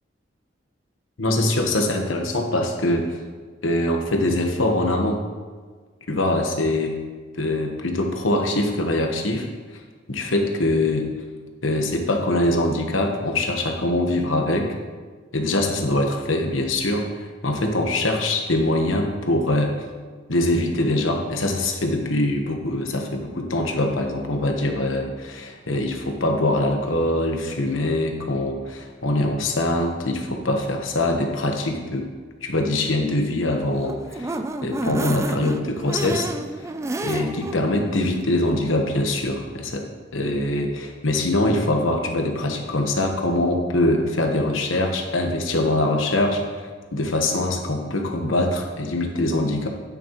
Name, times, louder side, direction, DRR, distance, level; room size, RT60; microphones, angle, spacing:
voice 1, 1.2-3.2 3.6-5.2 6.1-7.0 7.4-9.5 10.1-11.0 11.6-14.7 15.3-19.7 20.3-32.1 32.4-36.3 37.0-39.9 40.1-49.7, left 1 dB, 90° left, 3 dB, 1.2 m, -23 dB
sound 1, 33.6-37.6 38.0-38.1 38.4-38.5, right 2 dB, 15° right, 0.3 m, -30 dB
9.5 x 9.4 x 3.0 m, 1.5 s
head